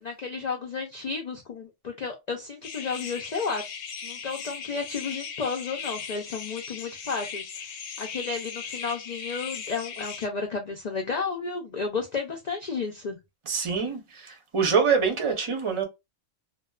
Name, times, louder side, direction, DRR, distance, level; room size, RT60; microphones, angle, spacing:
voice 1, 0.0-3.6 4.0-7.5 8.0-13.2, left 5 dB, 65° left, 0.4 m, -32 dB
sound 1, 2.6-10.3, left 6 dB, 90° left, 1.0 m, -38 dB
voice 2, 13.5-15.9, right 6 dB, 30° right, 0.6 m, -25 dB
2.6 x 2.2 x 2.2 m
omnidirectional pair, 1.3 m